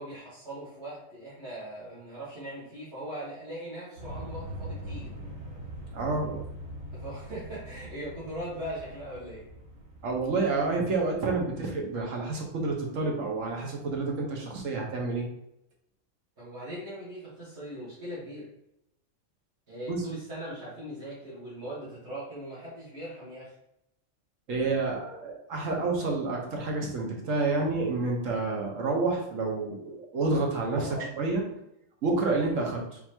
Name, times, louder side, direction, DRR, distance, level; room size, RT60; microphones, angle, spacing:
voice 1, 0.0-5.1 6.9-9.4 16.4-18.5 19.7-23.5 30.8-31.1, right 1 dB, 55° right, -11 dB, 1.9 m, -40 dB
sound 1, 4.0-12.4, equal, 90° right, 1.8 m, -42 dB
voice 2, 5.9-6.4 10.0-15.3 19.9-20.0 24.5-31.4 32.0-33.0, right 3 dB, 75° right, 0 dB, 1.4 m, -29 dB
4.2 x 2.8 x 4.4 m, 0.80 s
omnidirectional pair, 1.4 m